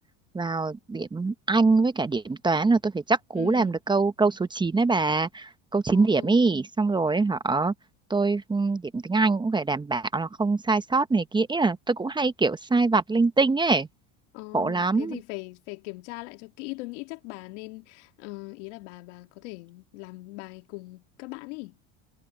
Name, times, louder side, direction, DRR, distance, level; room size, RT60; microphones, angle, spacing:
voice 1, 0.3-7.7 8.1-13.9 14.5-15.2, right 3 dB, 15° right, 1.0 m, -24 dB
voice 2, 3.3-3.8 5.9-6.4 14.3-21.7, left 23 dB, 75° left, 2.6 m, -40 dB
supercardioid pair, 110°, 35 cm